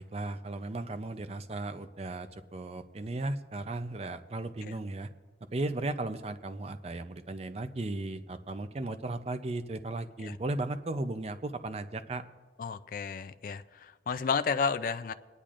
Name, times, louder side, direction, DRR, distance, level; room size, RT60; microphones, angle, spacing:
voice 1, 0.0-5.1 5.5-12.2, right 2 dB, 35° right, 10 dB, 0.5 m, -36 dB
voice 2, 12.6-15.1, left 5 dB, 50° left, 11 dB, 0.4 m, -32 dB
26.0 x 10.0 x 2.5 m, 1.3 s
head